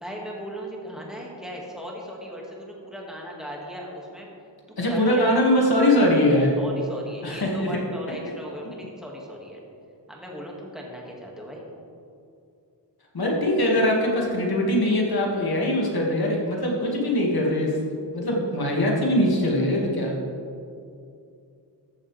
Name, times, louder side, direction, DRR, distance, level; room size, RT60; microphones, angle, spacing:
voice 1, 0.0-4.3 4.7-5.4 6.6-9.6 10.1-11.6, equal, ahead, -3 dB, 1.9 m, -37 dB
voice 2, 4.8-6.5 7.2-7.7 13.1-20.2, left 1 dB, 55° left, -1 dB, 2.0 m, -22 dB
13.5 x 7.1 x 3.3 m, 2.5 s
wide cardioid pair, 90°, 43 cm